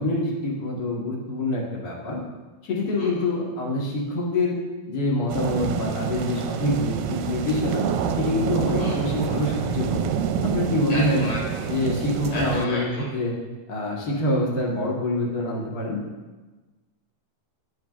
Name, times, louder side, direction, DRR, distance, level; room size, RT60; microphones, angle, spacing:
voice 1, 0.0-2.2 2.6-4.6 4.9-7.9 8.2-10.1 10.4-11.3 11.7-13.3 13.7-16.0, left 1 dB, 80° left, -3 dB, 0.8 m, -25 dB
voice 2, 2.9-3.4 8.8-9.0 10.9-11.7 12.3-13.1, left 1 dB, 55° left, -5 dB, 4.2 m, -33 dB
sound 1, 5.3-12.7, right 7 dB, 80° right, 2.1 m, -27 dB
18.0 x 6.9 x 2.5 m, 1.2 s
omnidirectional pair, 4.3 m